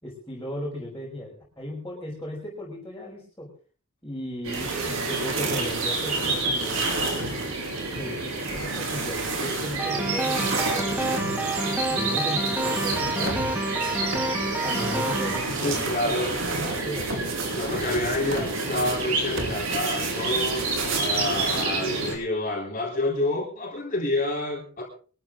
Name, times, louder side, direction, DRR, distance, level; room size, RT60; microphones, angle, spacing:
voice 1, 0.0-3.5 4.0-7.4 7.9-11.4 11.9-14.2 14.6-16.2 16.6-17.1, left 1 dB, 15° left, -6 dB, 5.2 m, -36 dB
sound 1, 4.4-22.1, right 3 dB, 75° right, 5.6 m, -30 dB
sound 2, 4.5-21.6, right 3 dB, 60° right, 3.0 m, -33 dB
sound 3, 9.8-15.4, right 2 dB, 5° right, 2.1 m, -29 dB
voice 2, 15.6-16.3 17.5-20.7 21.0-24.8, left 2 dB, 40° left, -3 dB, 3.7 m, -28 dB
23.0 x 13.5 x 3.8 m, 0.40 s
head